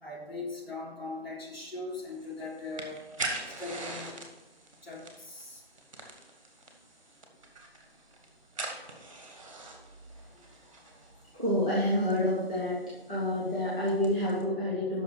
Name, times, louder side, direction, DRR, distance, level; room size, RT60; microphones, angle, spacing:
voice 1, 0.0-3.0 3.6-4.1 4.8-5.6, left 3 dB, 70° left, -3 dB, 3.5 m, -40 dB
sound 1, 1.9-14.4, right 2 dB, 30° right, 1.4 m, -44 dB
voice 2, 11.3-12.8 13.1-15.0, left 1 dB, 5° left, -11 dB, 0.8 m, -28 dB
8.3 x 6.2 x 5.3 m, 1.0 s
figure-of-eight pair, 155°, 31 cm